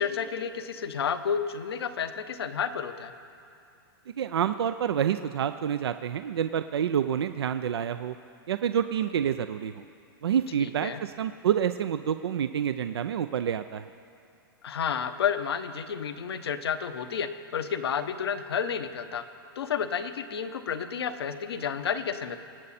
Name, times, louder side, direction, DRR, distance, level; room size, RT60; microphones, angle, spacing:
voice 1, 0.0-3.1 10.6-11.1 14.6-19.2 19.6-22.4, left 7 dB, 80° left, 9 dB, 0.9 m, -31 dB
voice 2, 4.2-8.1 8.5-9.8 10.2-13.9, right 9 dB, 85° right, 10 dB, 0.5 m, -28 dB
24.0 x 8.7 x 4.2 m, 2.5 s
hypercardioid pair, 130°, 13 cm